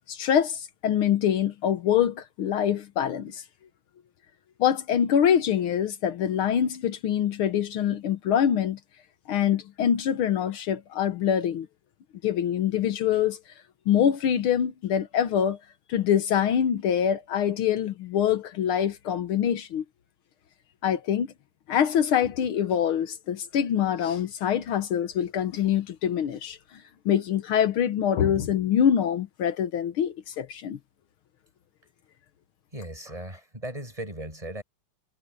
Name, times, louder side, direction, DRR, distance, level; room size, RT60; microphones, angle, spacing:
voice 1, 0.1-3.4 4.6-8.8 9.3-11.7 12.2-13.4 13.9-15.6 15.9-19.8 20.8-21.3 21.7-26.6 27.1-30.8, left 9 dB, 75° left, 1.9 m, -24 dB
voice 2, 32.7-34.6, right 1 dB, 15° right, 7.1 m, -37 dB
omnidirectional pair, 2.4 m